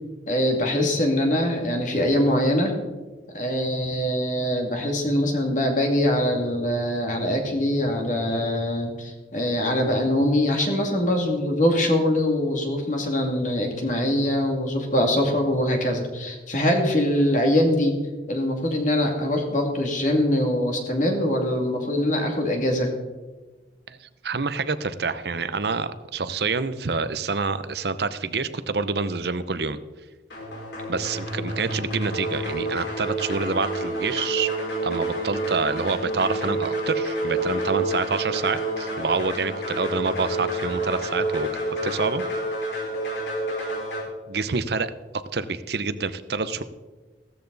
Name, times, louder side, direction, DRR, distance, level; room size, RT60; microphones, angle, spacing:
voice 1, 0.3-2.7 3.3-18.0 18.3-22.9, left 1 dB, 45° left, 2 dB, 2.4 m, -23 dB
voice 2, 23.9-29.8 30.9-34.5 34.8-41.5 41.8-42.2 44.3-44.9 45.3-46.6, right 4 dB, 60° right, 13 dB, 0.7 m, -27 dB
sound 1, 30.3-44.0, right 1 dB, 75° left, 4.8 m, -29 dB
16.0 x 13.5 x 4.0 m, 1.3 s
head